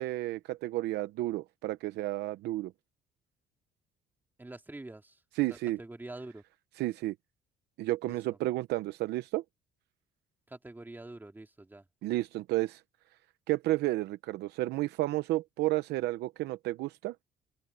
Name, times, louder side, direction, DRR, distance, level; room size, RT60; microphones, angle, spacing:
voice 1, 0.0-2.7 5.4-5.8 6.8-7.1 7.8-9.4 12.0-12.8 13.5-17.1, right 17 dB, 80° right, 0.8 m, -31 dB
voice 2, 4.4-6.4 8.1-8.4 10.5-11.9, right 2 dB, 10° right, 2.9 m, -46 dB
open air
cardioid pair, 110°, 17 cm